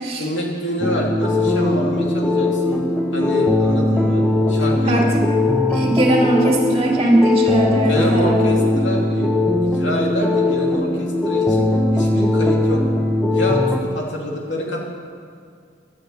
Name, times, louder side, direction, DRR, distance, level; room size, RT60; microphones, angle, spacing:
voice 1, 0.2-2.8 3.1-4.2 4.5-5.0 7.8-9.3 9.6-11.7 11.9-12.8 13.3-14.8, left 1 dB, 70° left, -1 dB, 2.8 m, -26 dB
sound 1, 0.8-13.8, left 2 dB, ahead, 0.8 m, -19 dB
voice 2, 4.9-5.2 5.7-8.7, right 1 dB, 30° right, -1 dB, 2.6 m, -19 dB
12.0 x 10.5 x 8.6 m, 2.2 s
head